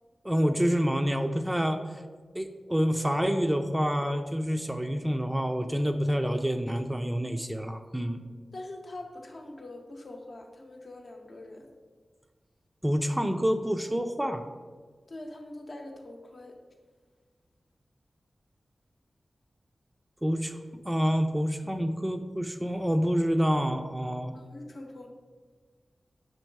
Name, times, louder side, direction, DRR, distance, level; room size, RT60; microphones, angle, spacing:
voice 1, 0.2-2.0 2.3-8.2 12.8-14.4 20.2-20.6 20.8-24.4, equal, 10° right, 7 dB, 0.3 m, -27 dB
voice 2, 8.5-11.7 15.1-16.6 21.6-21.8 24.3-25.1, left 1 dB, 60° left, 2 dB, 0.7 m, -43 dB
5.3 x 3.9 x 4.6 m, 1.5 s
wide cardioid pair, 80°, 0 cm